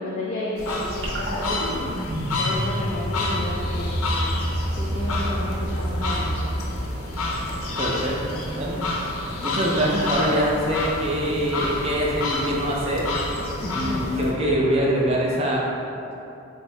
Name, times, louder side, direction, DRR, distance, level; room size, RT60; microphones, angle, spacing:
voice 1, 0.0-2.0 2.4-4.4 4.8-6.6 13.6-14.2, left 1 dB, 40° left, -5 dB, 0.3 m, -32 dB
sound 1, 0.6-14.3, left 2 dB, 90° left, 0.6 m, -30 dB
sound 2, 1.0-7.5, equal, 65° right, 0.8 m, -28 dB
sound 3, 2.9-15.1, right 1 dB, 85° right, 0.5 m, -39 dB
voice 2, 7.8-8.8 9.4-13.1 13.7-15.6, equal, 30° right, -3 dB, 0.5 m, -24 dB
4.0 x 2.7 x 3.2 m, 2.8 s
head